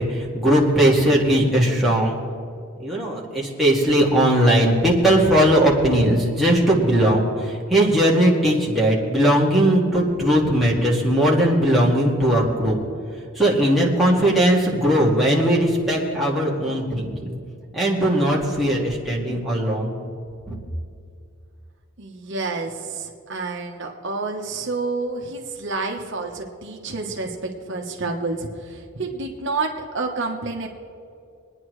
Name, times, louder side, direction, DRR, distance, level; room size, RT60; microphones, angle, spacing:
voice 1, 0.0-2.2 2.8-12.8 13.3-17.4 17.7-20.0 20.5-20.6, right 1 dB, ahead, -5 dB, 1.9 m, -19 dB
voice 2, 22.0-30.7, right 3 dB, 55° right, 1 dB, 1.1 m, -29 dB
24.0 x 9.8 x 3.2 m, 2.4 s
head